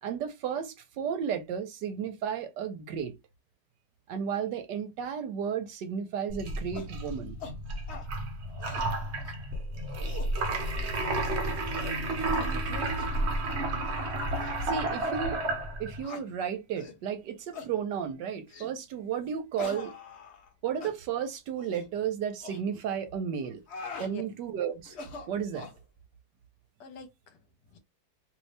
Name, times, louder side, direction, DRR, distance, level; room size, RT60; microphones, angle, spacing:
voice 1, 0.0-3.1 4.1-7.4 14.6-15.4 15.8-19.9 20.6-23.6 24.0-24.9 25.3-25.7, right 8 dB, 75° right, 1.2 m, -33 dB
sound 1, 6.3-16.0, right 2 dB, 55° right, 0.8 m, -31 dB
sound 2, 6.7-6.9 7.4-7.6 7.9-8.1 8.5-8.9 9.2-9.4 9.8-10.3 11.0-11.3 11.7-12.0 12.3-12.5 13.0-13.1 13.7-14.0 14.4-14.5 15.1-15.2 16.0-16.2 16.8-17.0 17.5-17.7 18.5-18.7 19.6-20.5 20.8-20.9 21.6-21.9 22.4-22.6 23.4-24.1 24.8-25.8, left 4 dB, 50° left, 0.9 m, -43 dB
voice 2, 8.8-9.3 12.4-12.9 24.0-24.2 26.8-27.4 27.7-27.8, left 4 dB, 70° left, 1.4 m, -46 dB
3.0 x 2.6 x 3.2 m
omnidirectional pair, 2.0 m